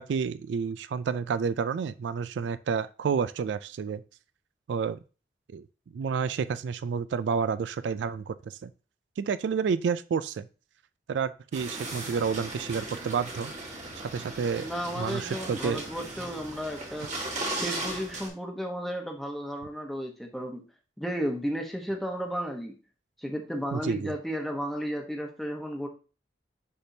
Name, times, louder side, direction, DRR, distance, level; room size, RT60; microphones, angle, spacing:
voice 1, 0.0-4.0 4.7-5.0 5.5-5.6 5.9-8.7 9.2-10.5 11.1-13.5 14.1-14.7 15.0-15.8 23.7-24.1, right 6 dB, 80° right, 14 dB, 0.3 m, -30 dB
sound 1, 11.5-18.3, right 2 dB, 40° right, 1.6 m, -37 dB
voice 2, 14.6-17.1 17.5-20.6 21.0-22.8 23.2-25.9, equal, ahead, 2 dB, 0.9 m, -33 dB
9.9 x 3.5 x 2.7 m, 0.34 s
head